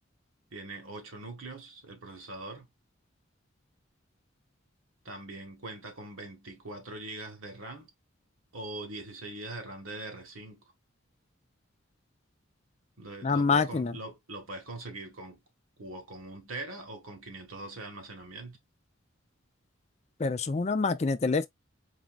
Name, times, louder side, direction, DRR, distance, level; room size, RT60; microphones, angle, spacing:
voice 1, 0.5-2.7 5.0-7.9 8.5-10.6 13.0-15.4 15.8-18.6, right 2 dB, 85° right, 1.7 m, -42 dB
voice 2, 13.2-13.9 20.2-21.5, left 4 dB, 30° left, 0.4 m, -26 dB
4.2 x 3.6 x 2.3 m
head